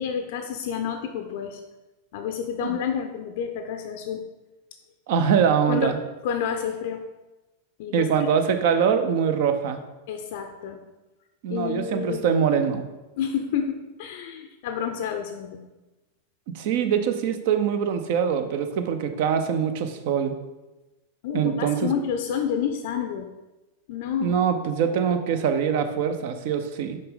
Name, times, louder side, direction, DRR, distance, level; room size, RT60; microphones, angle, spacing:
voice 1, 0.0-1.6 2.1-4.2 5.7-6.0 6.2-7.1 7.8-8.3 10.1-10.8 11.5-12.3 13.2-15.6 21.2-23.3 23.9-24.4, left 8 dB, 50° left, 6 dB, 0.5 m, -29 dB
voice 2, 5.1-6.0 7.9-9.8 11.4-12.8 16.5-20.3 21.3-21.9 24.2-27.0, right 7 dB, 50° right, 8 dB, 0.7 m, -23 dB
6.6 x 5.1 x 3.8 m, 1.1 s
figure-of-eight pair, 90°, 0 cm